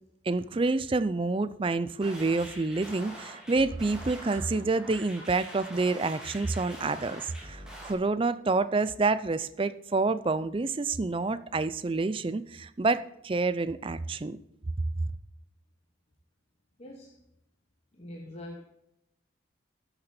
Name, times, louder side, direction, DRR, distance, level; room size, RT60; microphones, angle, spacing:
voice 1, 0.3-14.4, right 3 dB, 25° right, 0.4 m, -28 dB
sound 1, 2.0-7.9, equal, 5° right, 2.4 m, -44 dB
voice 2, 16.8-17.2 17.9-18.6, left 1 dB, 30° left, 1.0 m, -43 dB
13.0 x 6.9 x 4.3 m
head